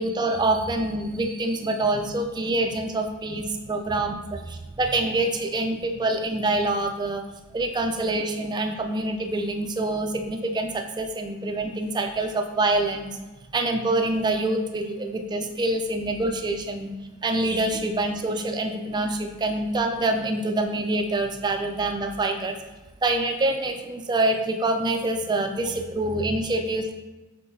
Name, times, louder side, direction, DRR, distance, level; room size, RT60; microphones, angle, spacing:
voice 1, 0.0-7.2 7.5-13.2 13.5-16.9 17.2-22.6 23.0-26.9, right 2 dB, 20° right, 5 dB, 0.3 m, -26 dB
5.5 x 3.6 x 2.7 m, 1.1 s
head